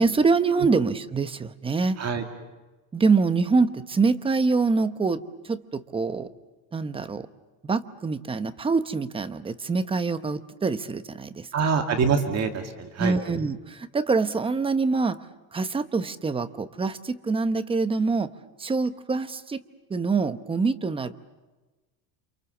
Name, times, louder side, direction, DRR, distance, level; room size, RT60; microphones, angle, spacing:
voice 1, 0.0-2.0 2.9-6.3 6.7-7.3 7.6-11.7 13.0-15.2 15.5-18.3 18.6-19.6 19.9-21.1, right 4 dB, 10° right, 11 dB, 0.9 m, -25 dB
voice 2, 11.5-13.2, right 5 dB, 35° right, 5 dB, 2.4 m, -25 dB
29.0 x 28.0 x 7.2 m, 1.2 s
cardioid pair, 155°, 47 cm